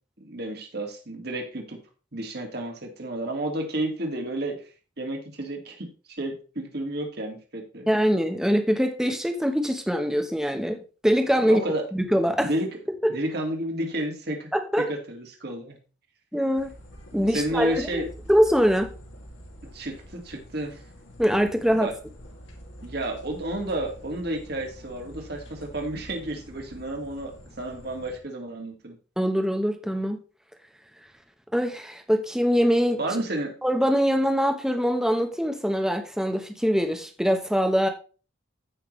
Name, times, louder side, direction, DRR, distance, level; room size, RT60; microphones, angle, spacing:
voice 1, 0.2-1.8 2.1-4.6 5.0-5.9 6.2-7.9 11.5-11.8 12.4-12.8 13.1-14.5 14.8-15.8 17.3-18.1 19.7-20.8 21.7-21.9 22.8-29.0 33.0-33.6, right 1 dB, 55° right, 3 dB, 2.2 m, -31 dB
voice 2, 7.9-11.6 11.9-12.5 13.0-13.1 14.5-14.9 16.3-16.7 17.1-18.9 21.2-21.9 29.2-30.2 31.5-33.0 33.6-37.9, equal, 5° right, 6 dB, 1.0 m, -23 dB
sound 1, 16.6-28.2, equal, 75° left, 2.7 m, -46 dB
14.5 x 5.9 x 3.2 m, 0.35 s
head